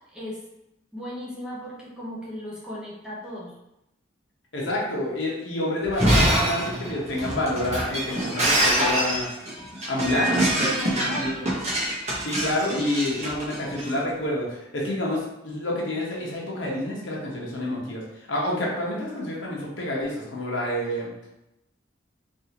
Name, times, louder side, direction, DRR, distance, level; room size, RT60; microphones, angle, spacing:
voice 1, 0.9-3.5 10.6-11.6, equal, 5° right, -7 dB, 0.8 m, -35 dB
voice 2, 4.5-9.3 9.9-10.4 11.0-11.3 12.2-21.1, left 1 dB, 70° left, -3 dB, 1.0 m, -28 dB
Shatter, 5.8-13.9, right 1 dB, 35° right, 1.0 m, -25 dB
3.7 x 2.7 x 2.9 m, 0.88 s
head